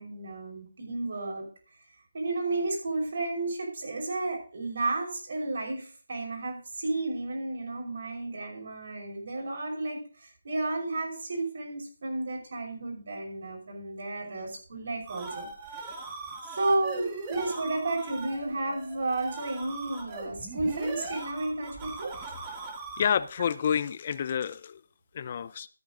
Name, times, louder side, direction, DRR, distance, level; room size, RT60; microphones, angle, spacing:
voice 1, 0.0-1.5 2.1-15.5 16.5-22.1, right 2 dB, 55° right, 1 dB, 5.7 m, -32 dB
sound 1, 14.8-23.3, right 3 dB, 15° right, 1.9 m, -40 dB
voice 2, 23.0-24.8 25.1-25.7, left 8 dB, 35° left, 17 dB, 0.6 m, -29 dB
13.5 x 8.9 x 3.9 m, 0.41 s
hypercardioid pair, 170°, 0 cm